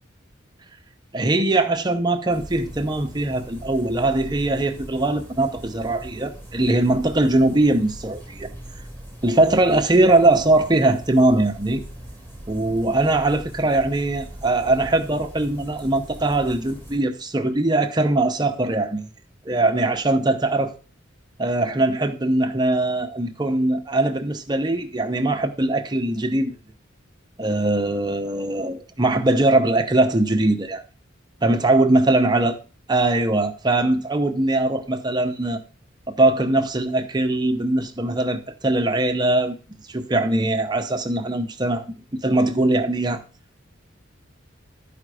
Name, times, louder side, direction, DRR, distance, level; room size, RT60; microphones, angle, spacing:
voice 1, 1.1-8.5 9.2-11.8 12.5-19.1 19.4-20.7 21.4-26.6 27.4-30.8 31.4-32.5 32.9-35.6 36.1-39.5 39.9-41.9 42.1-43.2, right 2 dB, 20° right, 0.8 m, -21 dB
sound 1, 2.3-17.0, right 1 dB, 10° left, 2.3 m, -40 dB
12.0 x 5.1 x 4.9 m
head